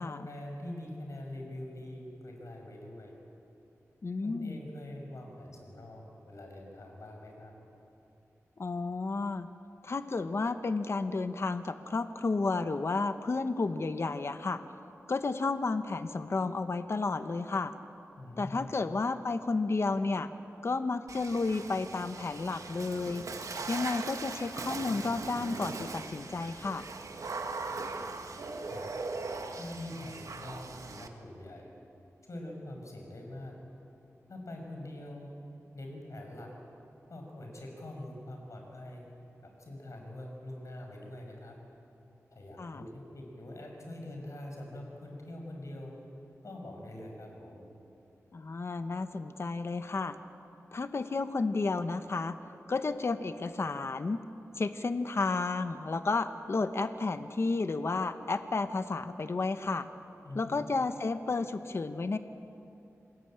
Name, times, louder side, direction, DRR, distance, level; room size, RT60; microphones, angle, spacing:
voice 1, 0.0-3.1 4.2-7.5 18.2-18.8 28.7-28.9 29.6-31.7 32.3-33.6 34.3-35.3 35.7-36.5 37.1-39.1 39.4-41.6 42.3-45.9 46.4-47.7 60.2-60.6, left 1 dB, 65° left, 1 dB, 6.3 m, -44 dB
voice 2, 4.0-4.6 8.6-9.5 9.8-14.6 15.1-17.7 18.4-20.3 20.6-23.3 23.7-26.9 42.6-42.8 48.3-50.1 50.7-52.3 52.7-54.2 54.6-59.9 60.3-62.2, left 3 dB, 50° left, 10 dB, 1.0 m, -32 dB
Water / Splash splatter, 21.1-31.1, right 3 dB, 80° right, 1.7 m, -40 dB
28.0 x 20.5 x 8.9 m, 2.9 s
wide cardioid pair, 110°, 6 cm